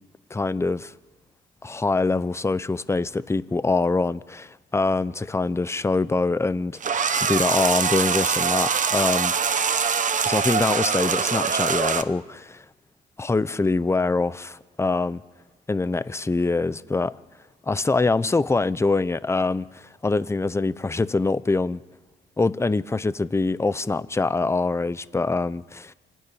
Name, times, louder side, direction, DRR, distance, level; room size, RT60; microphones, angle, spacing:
voice 1, 0.3-0.9 1.6-9.3 10.3-12.6 13.2-15.2 15.7-17.2 17.7-21.8 22.4-25.9, left 3 dB, 15° left, 0.7 m, -24 dB
sound 1, 6.8-12.0, right 6 dB, 40° right, 1.1 m, -23 dB
27.0 x 12.0 x 9.9 m
cardioid pair, 90°, 20 cm